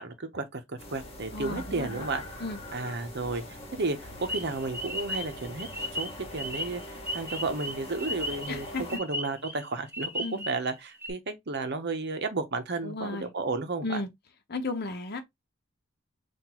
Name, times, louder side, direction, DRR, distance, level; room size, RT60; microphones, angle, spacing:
voice 1, 0.0-2.2 2.7-5.7 5.9-14.0, right 3 dB, 55° right, 0.9 m, -33 dB
sound 1, 0.8-9.0, left 1 dB, 30° left, 1.6 m, -43 dB
voice 2, 1.3-2.1 2.4-2.6 8.5-8.8 10.2-10.5 12.8-13.3 13.8-14.1 14.5-15.2, left 2 dB, 55° left, 0.9 m, -34 dB
sound 2, 4.2-10.7 11.0-11.1, equal, 10° right, 1.3 m, -36 dB
5.7 x 2.6 x 3.0 m
head